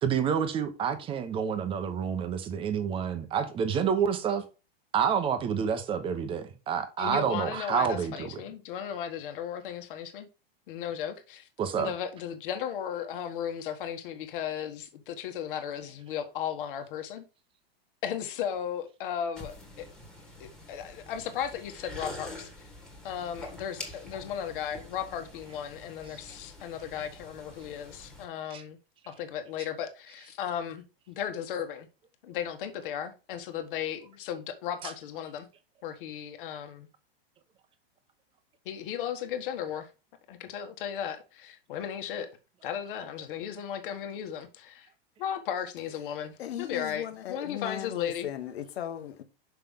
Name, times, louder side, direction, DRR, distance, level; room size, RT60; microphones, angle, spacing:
voice 1, 0.0-4.4 4.9-8.3 11.6-11.9 28.5-28.6 34.8-34.9, right 7 dB, 15° right, 0.8 m, -28 dB
voice 2, 7.0-10.3 10.7-11.5 11.8-17.2 18.0-19.5 20.4-22.7 23.0-28.8 29.1-31.9 32.2-35.5 35.8-36.9 38.6-39.9 40.3-42.3 42.6-44.9 45.2-48.3, left 9 dB, 55° left, 1.4 m, -35 dB
sound 1, 19.4-28.2, left 1 dB, ahead, 1.5 m, -46 dB
voice 3, 46.4-49.2, left 10 dB, 80° left, 1.2 m, -37 dB
5.8 x 5.6 x 3.6 m
supercardioid pair, 155°, 31 cm